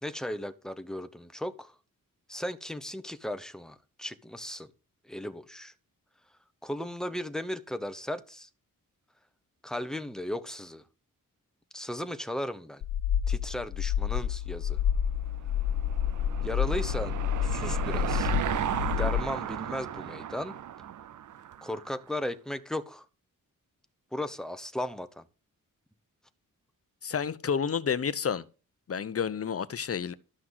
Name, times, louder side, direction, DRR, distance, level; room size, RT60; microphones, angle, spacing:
voice 1, 0.0-1.7 2.3-4.7 5.0-5.7 6.6-8.5 9.6-10.8 11.7-12.8 13.3-14.8 16.4-17.1 17.4-18.3 18.8-20.6 21.6-23.1 24.1-25.2, left 1 dB, ahead, 0.9 m, -36 dB
sound 1, 12.8-19.2, left 9 dB, 90° left, 0.6 m, -29 dB
Car passing by / Engine, 15.2-22.0, right 10 dB, 65° right, 0.6 m, -35 dB
voice 2, 27.0-28.4 28.9-30.1, left 7 dB, 45° left, 0.8 m, -30 dB
12.5 x 5.9 x 6.4 m
wide cardioid pair, 120°, 33 cm